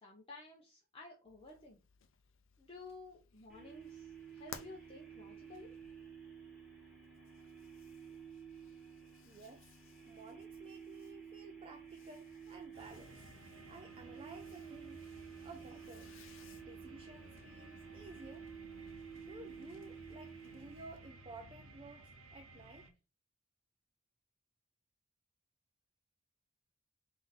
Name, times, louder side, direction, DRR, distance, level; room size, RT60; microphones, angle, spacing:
voice 1, 0.0-1.8 2.6-5.7, left 3 dB, 25° left, 0.7 m, -53 dB
sound 1, 1.2-21.0, left 7 dB, 65° left, 0.5 m, -61 dB
sound 2, 3.5-21.8, right 7 dB, 5° right, 1.5 m, -53 dB
voice 2, 9.2-9.7 10.1-13.2 13.7-15.0 15.4-16.2 16.5-18.5 19.1-22.9, right 2 dB, 25° right, 0.4 m, -54 dB
sound 3, 12.7-22.9, right 2 dB, 75° right, 0.7 m, -57 dB
3.7 x 2.6 x 4.0 m
head